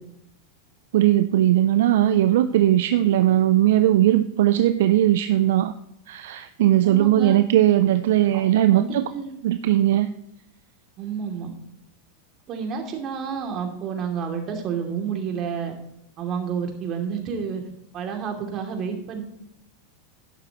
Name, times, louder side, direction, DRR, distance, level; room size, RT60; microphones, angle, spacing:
voice 1, 0.9-5.7 6.1-9.0 9.4-10.1, right 13 dB, 65° right, 11 dB, 0.5 m, -19 dB
voice 2, 6.8-7.4 8.3-9.3 11.0-11.5 12.5-15.7 16.2-17.6 17.9-19.2, right 6 dB, 40° right, 3 dB, 2.7 m, -30 dB
11.5 x 11.5 x 3.0 m, 0.80 s
hypercardioid pair, 95°, 0 cm